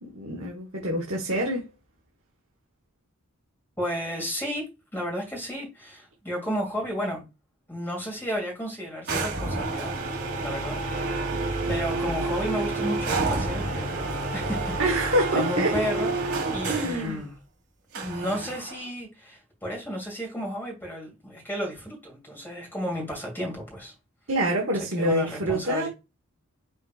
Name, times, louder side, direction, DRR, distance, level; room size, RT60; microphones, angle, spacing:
voice 1, 0.1-1.7 14.8-15.8 16.7-17.2 24.3-25.9, right 1 dB, 65° right, 1.2 m, -26 dB
voice 2, 3.8-7.2 7.7-9.9 10.4-10.8 11.1-14.0 14.3-14.8 15.3-16.1 16.5-17.3 18.0-23.9 25.0-25.9, equal, 10° left, 2.2 m, -32 dB
sound 1, 9.1-17.1 17.9-18.9, right 2 dB, 80° right, 1.7 m, -29 dB
5.3 x 4.0 x 2.4 m
head